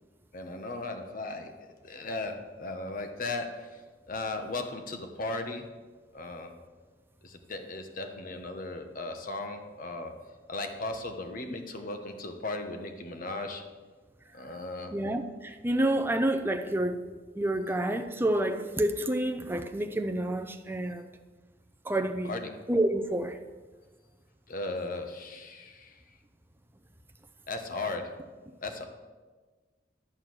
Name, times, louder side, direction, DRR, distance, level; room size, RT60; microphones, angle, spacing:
voice 1, 0.3-1.5 1.8-3.8 4.1-5.6 6.1-6.5 7.2-10.1 10.5-13.6 14.3-15.0 22.2-22.5 24.5-26.0 27.5-28.1 28.6-28.9, left 2 dB, 50° left, 5 dB, 1.1 m, -36 dB
voice 2, 14.9-17.0 17.4-21.1 21.8-22.3 22.7-23.4, right 1 dB, 15° right, 7 dB, 0.6 m, -28 dB
11.5 x 4.5 x 7.6 m, 1.4 s
head